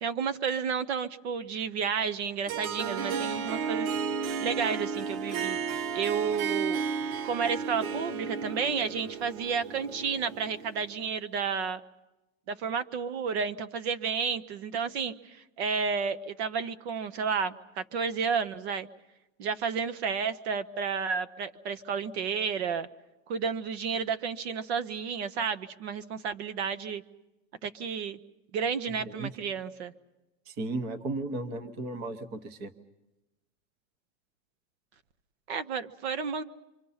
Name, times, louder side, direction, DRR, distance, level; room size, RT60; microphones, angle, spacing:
voice 1, 0.0-3.9 4.4-6.8 7.2-11.8 12.5-18.9 19.4-22.9 23.3-27.0 27.6-28.2 28.5-29.9 35.5-36.4, right 6 dB, 50° right, 12 dB, 0.9 m, -31 dB
Harp, 2.5-10.9, right 6 dB, 85° right, 1.4 m, -33 dB
voice 2, 30.5-32.7, right 2 dB, 25° right, 10 dB, 0.9 m, -35 dB
27.5 x 25.0 x 5.6 m, 0.99 s
supercardioid pair, 180°, 40 cm